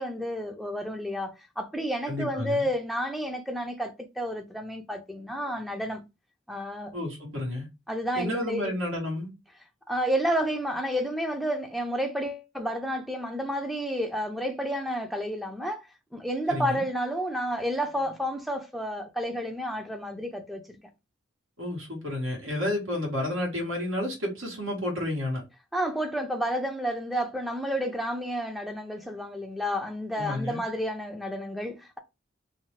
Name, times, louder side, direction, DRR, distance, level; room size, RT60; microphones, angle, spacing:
voice 1, 0.0-6.0 6.5-6.9 7.9-8.7 9.9-15.8 16.1-20.8 25.7-32.0, equal, ahead, 0.4 m, -30 dB
voice 2, 2.1-2.7 6.9-7.7 8.1-9.3 16.5-16.9 21.6-25.4 30.2-30.6, left 1 dB, 75° right, 1.2 m, -31 dB
2.6 x 2.0 x 3.1 m
head